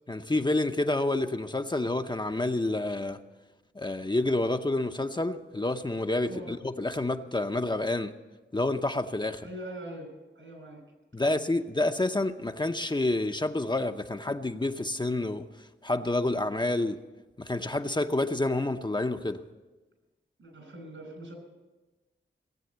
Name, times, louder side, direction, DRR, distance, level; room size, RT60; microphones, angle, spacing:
voice 1, 0.1-3.2 3.7-8.1 8.5-9.5 11.1-15.5 15.8-17.0 17.4-19.4, left 2 dB, 20° left, 6 dB, 0.7 m, -28 dB
voice 2, 9.4-10.1 10.4-10.8 11.2-11.4 20.4-21.3, right 1 dB, 75° right, 3 dB, 5.1 m, -42 dB
17.5 x 7.8 x 7.9 m, 1.2 s
cardioid pair, 55°, 21 cm